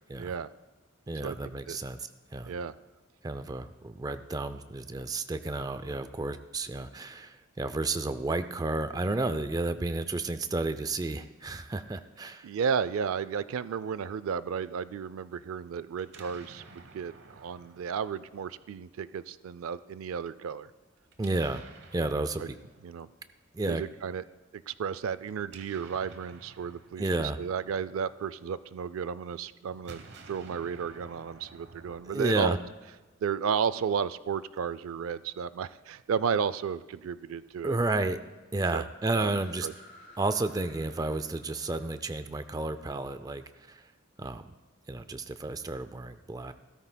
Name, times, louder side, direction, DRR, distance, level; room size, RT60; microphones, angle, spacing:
voice 1, 0.2-0.5 1.2-1.8 2.5-2.7 12.4-20.7 22.4-22.5 22.8-23.1 23.7-24.2 24.5-32.6 33.2-37.8 38.7-38.8 39.1-39.3 39.6-39.7, right 7 dB, 85° right, 15 dB, 0.4 m, -33 dB
voice 2, 1.1-2.5 3.2-12.5 21.2-21.6 21.9-22.6 23.5-23.8 27.0-27.4 32.1-32.6 37.6-38.2 38.5-39.7 40.2-43.8 44.2-44.4 44.9-46.5, right 2 dB, 20° right, 11 dB, 0.4 m, -32 dB
Explosion, 16.0-19.0 21.1-23.3 25.2-28.6 29.7-33.1, right 3 dB, 55° right, 0.9 m, -53 dB
sound 1, 39.2-43.8, left 1 dB, 50° left, 4.5 m, -55 dB
16.5 x 13.5 x 2.2 m, 1.2 s
head